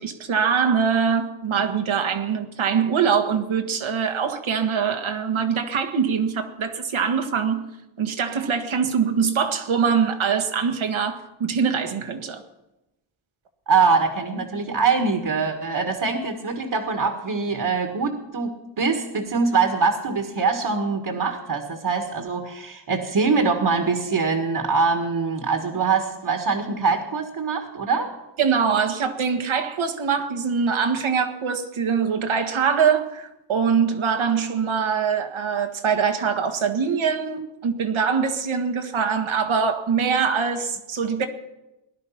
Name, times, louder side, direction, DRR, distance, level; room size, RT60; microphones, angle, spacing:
voice 1, 0.0-7.7 8.0-12.4 28.4-41.3, right 6 dB, 75° right, 1.8 m, -23 dB
voice 2, 13.7-28.1, right 4 dB, 50° right, 2.0 m, -23 dB
18.5 x 11.0 x 5.8 m
cardioid pair, 85°, 48 cm